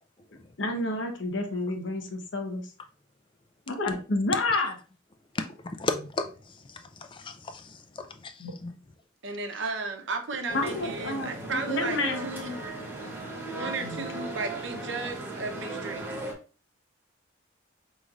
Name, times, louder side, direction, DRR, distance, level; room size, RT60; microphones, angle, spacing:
voice 1, 0.6-2.6 3.7-4.7 8.4-8.5 10.5-12.3 13.6-14.0, left 2 dB, 70° left, 4 dB, 0.8 m, -29 dB
voice 2, 5.3-6.3 6.7-8.8, left 3 dB, 25° left, 7 dB, 0.3 m, -35 dB
voice 3, 9.2-12.0 12.2-12.6 13.5-16.1, right 3 dB, 70° right, 4 dB, 0.7 m, -34 dB
sound 1, 10.5-16.3, right 2 dB, 10° right, 0.7 m, -37 dB
5.2 x 3.1 x 2.4 m, 0.37 s
head